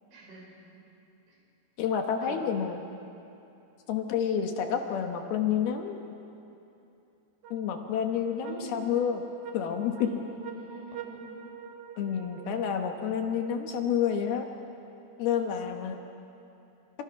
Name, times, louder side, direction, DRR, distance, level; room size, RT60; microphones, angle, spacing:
voice 1, 0.1-0.8 1.3-1.4 2.2-2.7 8.3-8.7 10.0-11.4, right 1 dB, 90° right, -2 dB, 8.2 m, -45 dB
voice 2, 1.8-2.8 3.9-6.0 7.5-9.2 9.5-10.1 12.0-14.5 15.2-16.0, left 8 dB, 70° left, 4 dB, 2.9 m, -29 dB
sound 1, 7.4-15.0, right 8 dB, 70° right, 1.8 m, -47 dB
29.0 x 26.0 x 5.9 m, 2.8 s
omnidirectional pair, 5.2 m